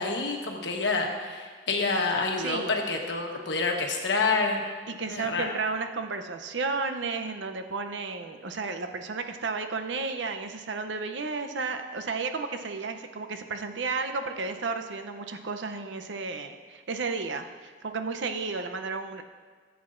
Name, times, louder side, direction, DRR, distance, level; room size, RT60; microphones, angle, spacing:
voice 1, 0.0-4.6 5.1-5.5, left 3 dB, 75° left, 2 dB, 1.2 m, -28 dB
voice 2, 2.4-2.7 4.9-19.2, right 4 dB, 85° right, 7 dB, 0.7 m, -33 dB
14.5 x 8.1 x 2.6 m, 1.5 s
head